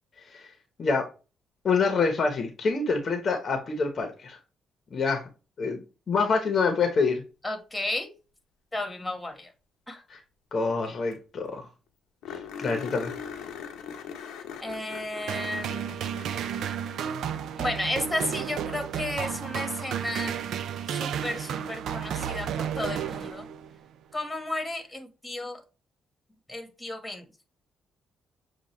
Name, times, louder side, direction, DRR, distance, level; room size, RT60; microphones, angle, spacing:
voice 1, 1.6-4.4 4.9-5.2 5.6-5.8 6.1-7.2 10.1-10.2 10.5-11.7 12.3-13.2, left 4 dB, 45° left, 0.9 m, -26 dB
voice 2, 7.4-8.1 8.7-9.5 9.9-10.0 14.6-16.2 17.6-20.4 20.9-23.5 24.1-25.6 26.5-27.2, left 1 dB, 10° left, 1.4 m, -33 dB
sound 1, 10.8-10.9 11.1-11.2 11.5-11.6 12.2-17.7 20.0-20.1 22.9-23.0, left 7 dB, 85° left, 0.8 m, -41 dB
sound 2, 15.3-23.8, right 8 dB, 75° right, 0.4 m, -32 dB
6.8 x 2.4 x 3.1 m
cardioid pair, 90°, 0 cm